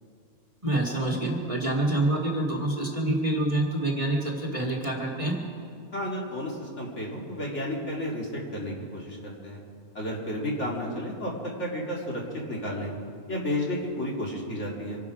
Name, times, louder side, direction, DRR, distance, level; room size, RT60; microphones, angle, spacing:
voice 1, 0.6-5.4, right 1 dB, 20° right, -1 dB, 1.8 m, -27 dB
voice 2, 5.9-9.6 9.9-11.3 11.6-12.2 12.5-12.9 13.3-15.0, left 1 dB, 50° left, -3 dB, 3.0 m, -32 dB
25.5 x 11.5 x 4.9 m, 2.3 s
omnidirectional pair, 1.6 m